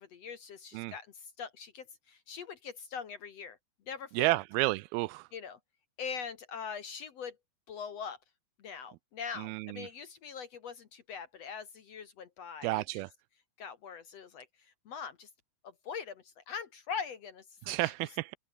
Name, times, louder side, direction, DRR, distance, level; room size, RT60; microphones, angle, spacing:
voice 1, 0.0-3.6 3.9-4.4 5.3-5.6 6.0-7.4 7.7-8.2 8.6-13.0 13.6-15.3 15.6-17.9, left 6 dB, 55° left, 2.0 m, -42 dB
voice 2, 4.1-5.3 9.4-9.9 12.6-13.1 17.7-18.3, right 21 dB, 85° right, 2.5 m, -31 dB
omnidirectional pair, 4.3 m